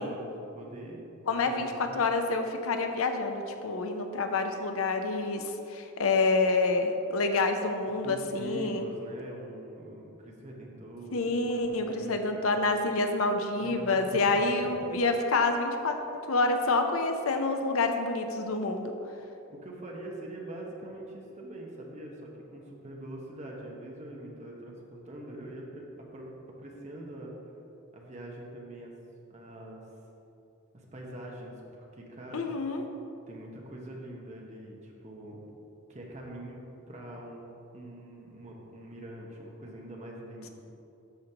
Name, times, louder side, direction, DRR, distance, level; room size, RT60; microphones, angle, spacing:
voice 1, 0.0-1.1 1.5-2.0 8.0-11.6 11.9-12.4 13.6-14.8 19.5-25.8 26.1-26.3 26.6-27.3 27.9-28.9 29.3-29.8 30.7-32.5 33.3-35.5 35.9-36.6 36.9-37.4 37.7-40.5, right 1 dB, 35° right, -1 dB, 1.1 m, -43 dB
voice 2, 1.3-8.8 11.1-16.0 16.3-18.9 32.3-32.8, left 3 dB, 75° left, 5 dB, 0.6 m, -28 dB
12.5 x 5.2 x 2.9 m, 2.8 s
head